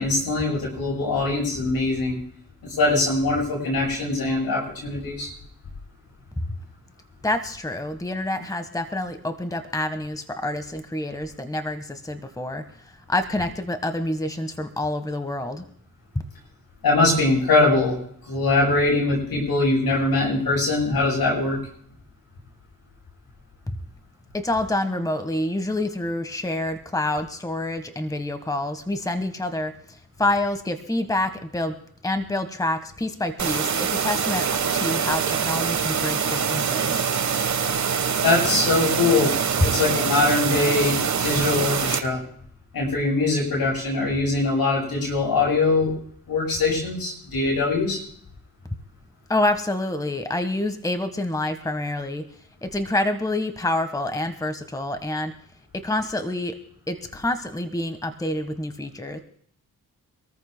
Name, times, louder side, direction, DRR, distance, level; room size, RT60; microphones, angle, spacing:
voice 1, 0.0-2.2 2.6-5.3 16.8-17.9 18.3-21.6 38.2-39.3 39.6-42.2 42.7-45.9 46.3-48.0, left 3 dB, 75° left, -1 dB, 7.9 m, -22 dB
voice 2, 7.2-12.6 13.1-15.6 23.7-23.8 24.3-31.7 32.0-37.1 39.6-39.7 49.3-52.2 52.6-55.3 55.7-56.6 56.9-59.2, left 1 dB, 10° left, 8 dB, 1.4 m, -27 dB
sound 1, 33.4-42.0, right 7 dB, 50° right, 1.3 m, -24 dB
26.0 x 14.0 x 2.2 m, 0.62 s
cardioid pair, 65°, 36 cm